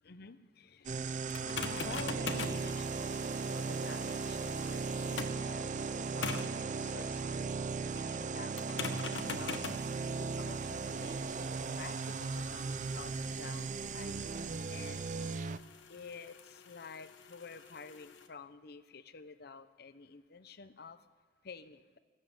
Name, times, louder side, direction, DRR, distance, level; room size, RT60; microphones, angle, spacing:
voice 1, 0.0-9.6 9.9-14.2 14.7-15.0 15.9-21.0 21.4-22.0, left 4 dB, 60° left, 12 dB, 0.8 m, -50 dB
sound 1, 0.8-15.6, right 4 dB, 45° right, 0.5 m, -37 dB
sound 2, 1.3-5.5 6.2-6.6 8.6-18.3, left 5 dB, 85° left, 1.0 m, -45 dB
14.0 x 12.0 x 7.1 m, 1.5 s
head